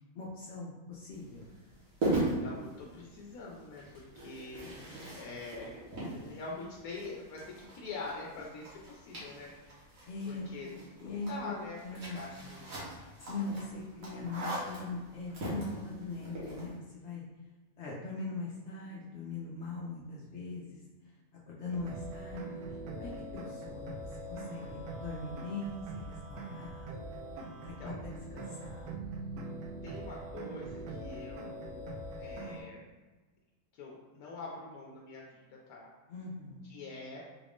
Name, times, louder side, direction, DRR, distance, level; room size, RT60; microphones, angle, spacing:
voice 1, 0.1-1.5 4.6-5.5 6.0-6.1 10.1-10.7 11.0-11.5 11.8-12.6 13.0-17.2 17.8-20.8 21.5-22.6 22.9-27.0 27.8-29.2 36.1-36.7, left 3 dB, 60° left, -5 dB, 0.8 m, -41 dB
sound 1, 1.1-16.7, right 1 dB, 70° right, 1.6 m, -40 dB
voice 2, 2.1-4.6 5.1-9.5 10.3-11.8 12.1-12.7 27.6-28.0 29.8-31.9 32.2-32.8 33.7-35.9 36.7-37.2, left 3 dB, 85° left, -2 dB, 1.1 m, -45 dB
sound 2, 21.7-32.6, right 2 dB, 90° right, 1.1 m, -42 dB
3.9 x 2.4 x 3.5 m, 1.3 s
omnidirectional pair, 1.5 m